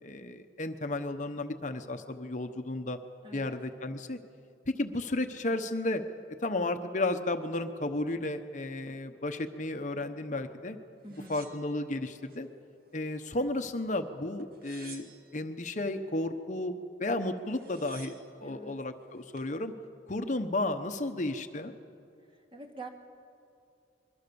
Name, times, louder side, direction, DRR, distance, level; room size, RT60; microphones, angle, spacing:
voice 1, 0.0-3.0 3.3-4.2 4.7-6.0 6.4-10.8 11.3-12.5 12.9-15.1 15.3-19.7 20.1-21.7, left 2 dB, 45° left, 7 dB, 1.0 m, -33 dB
voice 2, 3.2-3.6 11.0-11.4 18.4-18.8 22.2-22.9, right 2 dB, 30° right, 2 dB, 2.3 m, -46 dB
sound 1, 11.1-12.4 12.9-13.7 14.4-15.5 17.0-17.1 17.4-18.4 19.0-19.5, right 5 dB, 55° right, 2.0 m, -53 dB
25.0 x 22.5 x 7.0 m, 2.6 s
head